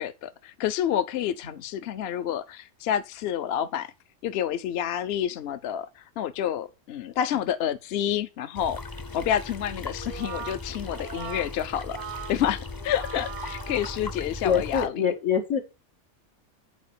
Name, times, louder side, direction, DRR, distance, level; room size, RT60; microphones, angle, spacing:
voice 1, 0.0-3.9 4.2-8.8 9.1-12.0 12.3-14.9, left 10 dB, 65° left, 0.8 m, -29 dB
sound 1, 8.5-14.9, left 3 dB, 25° left, 0.5 m, -38 dB
Brass instrument, 9.9-14.5, right 8 dB, 55° right, 0.6 m, -40 dB
voice 2, 14.4-15.6, left 7 dB, 85° left, 1.9 m, -25 dB
8.4 x 4.3 x 6.7 m
omnidirectional pair, 1.3 m